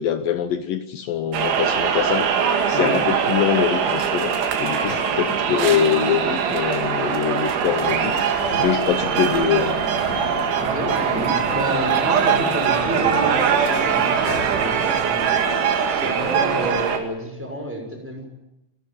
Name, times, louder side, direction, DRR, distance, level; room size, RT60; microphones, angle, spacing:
voice 1, 0.0-2.4 2.7-4.3 4.6-9.8, left 9 dB, 80° left, 9 dB, 2.0 m, -23 dB
sound 1, 1.3-17.0, right 7 dB, 80° right, 4.6 m, -22 dB
sound 2, 8.2-14.7, left 2 dB, 50° left, 4.4 m, -35 dB
voice 2, 10.6-15.3 16.0-18.3, equal, 5° right, 2 dB, 6.0 m, -30 dB
28.0 x 13.5 x 9.4 m, 0.90 s
omnidirectional pair, 5.4 m